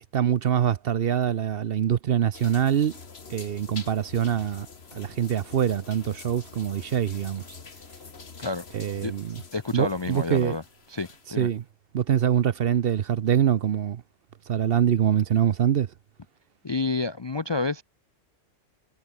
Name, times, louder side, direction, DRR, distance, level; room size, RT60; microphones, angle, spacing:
voice 1, 0.1-2.9 3.3-4.7 4.9-7.4 8.7-9.4 9.7-10.6 11.4-11.6 11.9-14.0 14.5-15.9, right 9 dB, 60° right, 0.8 m, -24 dB
sound 1, 2.3-11.5, left 4 dB, 55° left, 2.0 m, -46 dB
voice 2, 9.5-10.6 10.9-11.5 16.6-17.8, left 3 dB, 35° left, 0.4 m, -29 dB
omnidirectional pair, 1.3 m